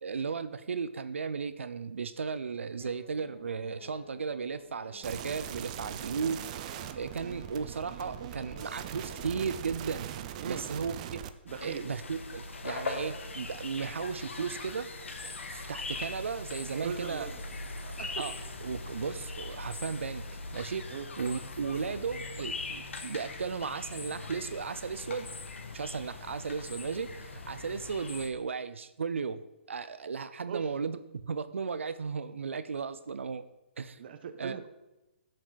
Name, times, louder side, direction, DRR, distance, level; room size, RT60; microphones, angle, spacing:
voice 1, 0.0-6.4 6.9-10.1 10.4-11.0 11.6-14.9 15.2-17.3 18.2-18.3 18.6-20.3 20.5-20.9 21.2-25.3 25.7-29.4 29.7-33.4 33.8-34.0 34.4-34.6, right 5 dB, 90° right, 13 dB, 0.6 m, -35 dB
sound 1, 2.8-9.9, left 3 dB, 60° left, 3.4 m, -53 dB
sound 2, 5.0-11.3, right 11 dB, 35° right, 0.6 m, -41 dB
voice 2, 11.4-11.9 16.7-17.4 17.8-18.2 20.9-21.1 30.5-30.7 34.0-34.7, right 7 dB, 50° right, 8 dB, 1.1 m, -39 dB
sound 3, 11.5-28.3, left 3 dB, 90° left, 1.5 m, -41 dB
15.5 x 6.5 x 4.1 m, 0.99 s
hypercardioid pair, 150°, 7 cm